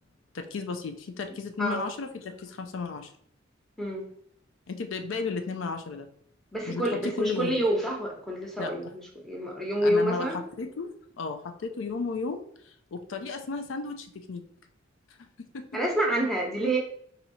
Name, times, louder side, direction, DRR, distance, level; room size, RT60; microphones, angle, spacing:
voice 1, 0.3-3.1 4.7-6.1 6.6-7.6 8.6-8.8 9.8-14.4 15.2-15.3 15.5-15.7, left 4 dB, 80° left, 6 dB, 0.5 m, -34 dB
voice 2, 3.8-4.1 6.5-10.4 15.7-16.8, right 1 dB, ahead, -2 dB, 0.9 m, -28 dB
4.2 x 2.7 x 4.1 m, 0.64 s
head